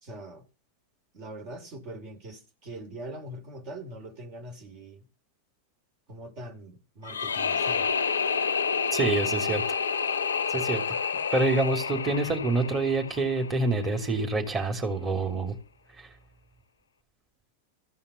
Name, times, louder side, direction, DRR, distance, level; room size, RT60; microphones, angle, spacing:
voice 1, 0.0-0.4 1.1-5.0 6.1-7.9, right 1 dB, 45° right, 3.0 m, -42 dB
sound 1, 7.0-14.0, left 6 dB, 70° left, 0.6 m, -29 dB
voice 2, 8.9-9.8 10.5-10.8 11.3-15.5, right 3 dB, 20° right, 3.3 m, -26 dB
15.5 x 5.7 x 9.0 m
figure-of-eight pair, 90°, 0 cm